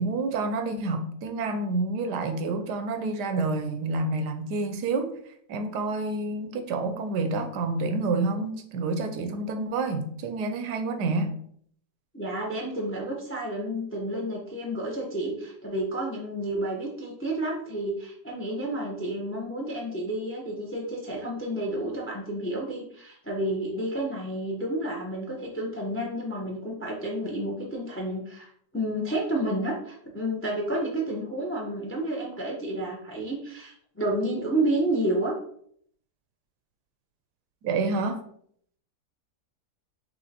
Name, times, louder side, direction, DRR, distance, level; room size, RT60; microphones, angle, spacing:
voice 1, 0.0-5.2 5.5-11.3 37.6-38.2, right 3 dB, 80° right, 1.2 m, -28 dB
voice 2, 12.1-28.5 28.7-35.3, right 1 dB, 15° left, 0.5 m, -30 dB
5.8 x 3.0 x 2.8 m
omnidirectional pair, 1.8 m